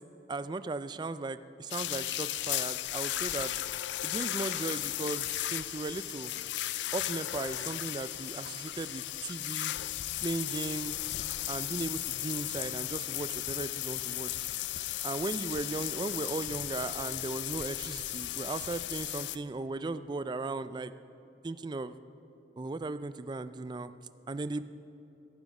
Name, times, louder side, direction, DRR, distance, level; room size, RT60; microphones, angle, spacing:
voice 1, 0.3-3.5 4.0-6.3 6.9-9.7 10.2-11.0 11.5-14.5 15.0-20.9 21.4-21.9 22.6-24.0 24.3-24.6, right 3 dB, 25° right, 13 dB, 0.3 m, -37 dB
sound 1, 1.7-19.4, left 14 dB, 80° left, 0.4 m, -35 dB
16.5 x 9.3 x 4.9 m, 2.9 s
head